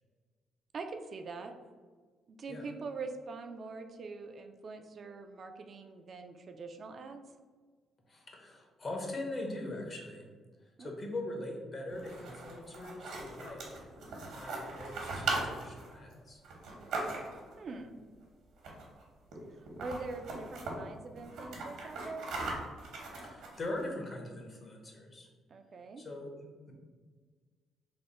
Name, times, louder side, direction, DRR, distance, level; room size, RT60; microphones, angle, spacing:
voice 1, 0.7-1.5 2.3-7.2 10.8-10.9 17.6-18.0 19.5-22.3 25.5-26.0, right 3 dB, 50° right, 6 dB, 0.3 m, -43 dB
voice 2, 8.1-10.3 10.6-13.9 14.3-16.4 23.2-25.3 26.0-26.7, left 1 dB, 40° left, 1 dB, 0.9 m, -41 dB
Storing an item in a Box, 11.9-17.5 18.6-19.0 19.3-19.4 19.7-20.7 21.2-23.8, right 3 dB, 80° right, 0.9 m, -39 dB
3.4 x 2.1 x 4.1 m, 1.5 s
cardioid pair, 90°, 0 cm